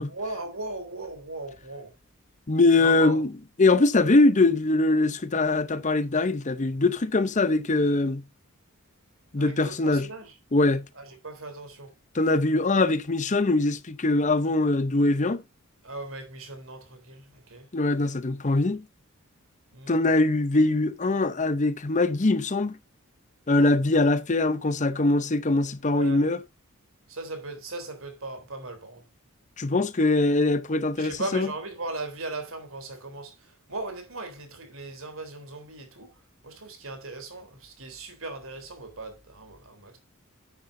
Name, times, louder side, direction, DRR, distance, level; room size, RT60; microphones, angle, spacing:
voice 1, 0.1-1.9 2.8-3.2 9.4-10.3 11.0-11.9 15.8-17.7 19.7-20.0 25.8-26.2 27.1-29.0 31.0-33.3 33.7-36.1 36.4-40.0, right 2 dB, 65° right, 3.6 m, -38 dB
voice 2, 2.5-3.3 3.6-8.2 9.3-10.1 10.5-10.8 12.1-15.4 17.7-18.8 19.9-22.8 23.5-26.4 29.6-31.5, left 2 dB, 35° left, 0.7 m, -22 dB
10.5 x 9.7 x 2.7 m
head